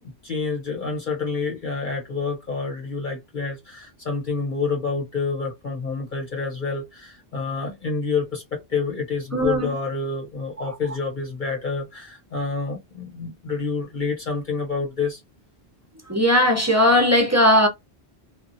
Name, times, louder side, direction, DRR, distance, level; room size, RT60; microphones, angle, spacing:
voice 1, 0.2-15.2, left 4 dB, 50° left, 1.0 m, -28 dB
voice 2, 9.3-9.7 16.1-17.7, left 1 dB, 20° right, 0.7 m, -18 dB
2.8 x 2.4 x 2.6 m
omnidirectional pair, 1.1 m